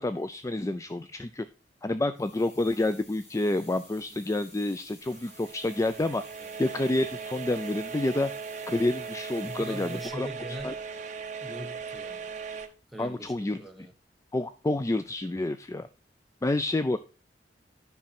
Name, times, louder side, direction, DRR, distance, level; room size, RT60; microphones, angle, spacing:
voice 1, 0.0-1.5 1.8-6.2 6.6-8.3 8.7-10.3 10.6-10.7 13.0-13.6 14.3-15.9 16.4-17.0, left 2 dB, 20° left, 0.4 m, -28 dB
sound 1, 2.1-10.1, left 2 dB, 40° left, 3.4 m, -53 dB
sound 2, 5.0-12.7, right 5 dB, 45° right, 1.0 m, -39 dB
voice 2, 9.4-10.8 11.4-12.3 12.9-13.9, equal, ahead, 1.2 m, -41 dB
10.5 x 6.0 x 4.3 m
head